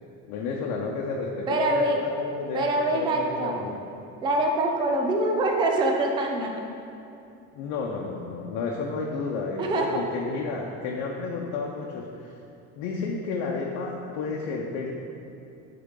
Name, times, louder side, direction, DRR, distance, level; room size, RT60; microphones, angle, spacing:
voice 1, 0.3-2.7 2.9-3.8 7.5-12.4 12.7-14.9, left 4 dB, 90° left, -2 dB, 0.8 m, -31 dB
voice 2, 1.5-2.0 2.5-3.7 4.2-6.6 9.6-10.0, right 2 dB, 15° right, 1 dB, 0.4 m, -24 dB
11.0 x 3.9 x 3.8 m, 2.7 s
cardioid pair, 170°, 29 cm